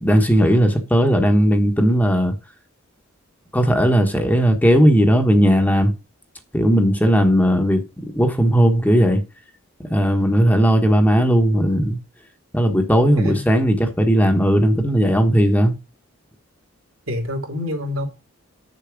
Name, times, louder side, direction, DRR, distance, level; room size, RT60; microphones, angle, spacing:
voice 1, 0.0-2.3 3.5-5.9 6.5-7.8 8.1-9.2 9.9-12.0 12.5-15.7, equal, 10° left, 1.1 m, -16 dB
voice 2, 12.9-13.5 17.1-18.0, left 1 dB, 75° right, 2.7 m, -27 dB
6.9 x 6.9 x 5.0 m
head